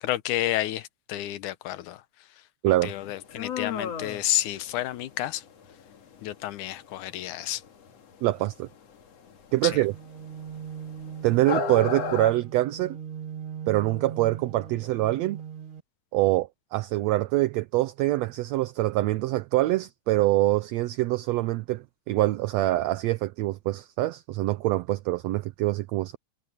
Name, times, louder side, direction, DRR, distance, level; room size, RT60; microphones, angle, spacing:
voice 1, 0.0-2.0 2.8-5.4 6.2-7.6 9.6-9.8, left 13 dB, 90° left, 2.4 m, -30 dB
sound 1, 2.7-12.3, left 6 dB, 60° left, 2.9 m, -35 dB
voice 2, 8.2-8.7 9.5-9.9 11.2-13.0 13.7-15.4 16.1-26.2, right 17 dB, 75° right, 1.7 m, -25 dB
sound 2, 9.8-15.8, right 8 dB, 25° right, 1.3 m, -40 dB
omnidirectional pair, 3.4 m